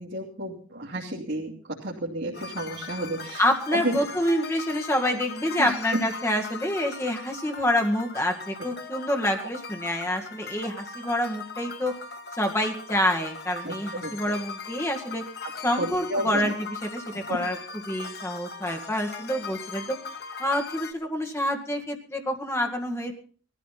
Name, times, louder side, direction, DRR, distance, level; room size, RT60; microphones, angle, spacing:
voice 1, 0.0-3.4 3.7-4.0 5.6-6.0 13.6-13.7 14.0-14.4 15.8-16.5 17.3-17.4, right 1 dB, 60° right, -7 dB, 2.9 m, -31 dB
sound 1, 2.3-20.9, left 4 dB, 55° left, 1.3 m, -39 dB
voice 2, 3.4-11.9 12.4-15.2 15.6-16.5 16.8-17.6 17.9-20.0 20.4-23.1, left 1 dB, 15° left, 3 dB, 1.9 m, -27 dB
19.0 x 14.0 x 4.1 m, 0.41 s
head